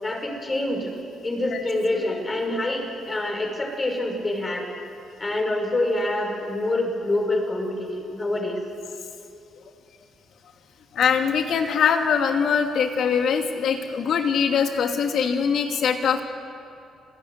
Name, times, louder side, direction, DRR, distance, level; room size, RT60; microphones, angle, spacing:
voice 1, 0.0-0.9 1.2-4.7 5.2-8.6, left 1 dB, 25° left, 1 dB, 5.8 m, -26 dB
voice 2, 10.9-16.2, left 6 dB, 70° left, 4 dB, 2.5 m, -22 dB
27.5 x 16.5 x 9.5 m, 2.5 s
cardioid pair, 90°, 0 cm